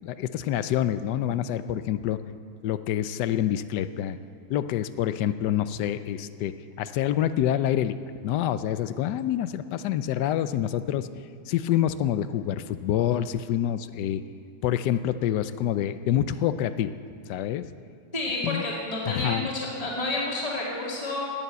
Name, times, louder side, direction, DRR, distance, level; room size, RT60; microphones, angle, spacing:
voice 1, 0.0-2.2 2.6-4.2 4.5-8.0 8.2-11.1 11.5-14.2 14.6-16.9 17.3-17.7 18.4-18.6 19.1-19.5, left 11 dB, 70° left, 12 dB, 1.1 m, -27 dB
voice 2, 18.1-21.3, left 2 dB, 20° left, -4 dB, 2.4 m, -30 dB
19.5 x 7.1 x 8.0 m, 2.3 s
omnidirectional pair, 2.2 m